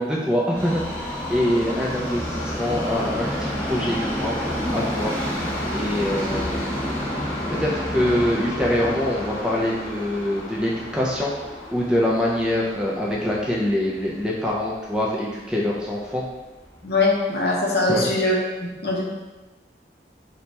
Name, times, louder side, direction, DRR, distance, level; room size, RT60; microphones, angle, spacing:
voice 1, 0.0-4.4 4.7-5.1 5.7-6.5 7.5-11.3 11.7-16.2 17.9-18.1, left 1 dB, 5° right, -4 dB, 0.3 m, -24 dB
Subway metro underground, 0.5-14.7 15.0-15.1 15.9-16.0 16.3-16.4 17.0-17.1, equal, 20° left, 1.1 m, -30 dB
voice 2, 16.8-19.0, left 2 dB, 65° left, -3 dB, 0.7 m, -22 dB
2.8 x 2.2 x 4.1 m, 1.2 s
head